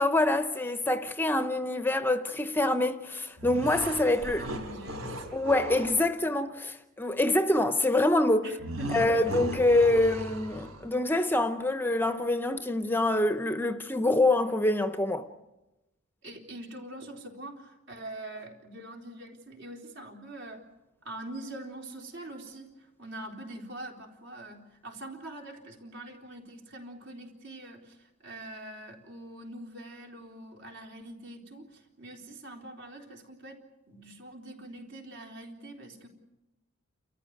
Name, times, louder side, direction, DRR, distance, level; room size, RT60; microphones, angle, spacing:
voice 1, 0.0-4.4 5.3-8.5 8.9-15.3, left 2 dB, 10° left, 0.7 m, -25 dB
sound 1, 3.4-6.0 8.6-10.9, equal, 75° right, 5.0 m, -37 dB
voice 2, 4.2-5.2 8.4-9.3 16.2-20.6 21.0-33.6 33.9-36.1, right 1 dB, 60° right, 3.9 m, -44 dB
29.5 x 14.5 x 9.4 m
head